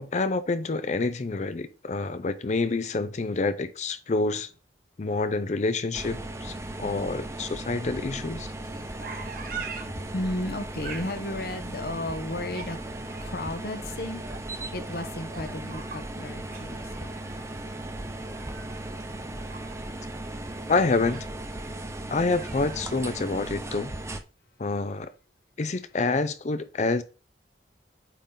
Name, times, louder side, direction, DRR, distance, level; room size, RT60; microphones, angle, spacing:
voice 1, 0.0-4.5 5.0-8.5 20.7-21.2 22.1-23.9 24.6-25.1 25.6-27.0, left 3 dB, 40° left, 0.5 m, -27 dB
sound 1, 5.9-24.2, right 1 dB, 15° right, 0.5 m, -37 dB
sound 2, 8.6-23.7, right 5 dB, 50° right, 1.1 m, -45 dB
voice 2, 9.8-12.8 13.2-14.2 14.7-17.1 17.4-17.5, left 1 dB, 60° left, 0.9 m, -34 dB
8.4 x 3.8 x 3.8 m
head